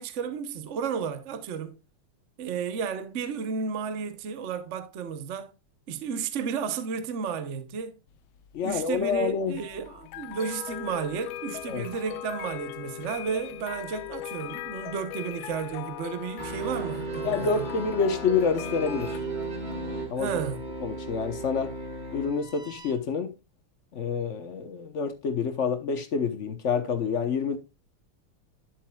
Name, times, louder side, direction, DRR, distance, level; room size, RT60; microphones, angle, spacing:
voice 1, 0.0-1.8 2.4-5.5 5.9-7.9 8.6-17.7 20.2-20.6, right 6 dB, 60° right, 0.7 m, -33 dB
sound 1, 8.1-19.2, left 12 dB, 75° left, 1.2 m, -39 dB
voice 2, 8.5-9.6 11.7-11.9 17.2-19.2 20.1-20.4 20.8-21.7 22.1-23.3 23.9-27.6, left 5 dB, 55° left, 0.8 m, -27 dB
sound 2, 16.4-22.9, right 3 dB, 25° right, 1.5 m, -36 dB
10.5 x 7.5 x 2.3 m
omnidirectional pair, 2.4 m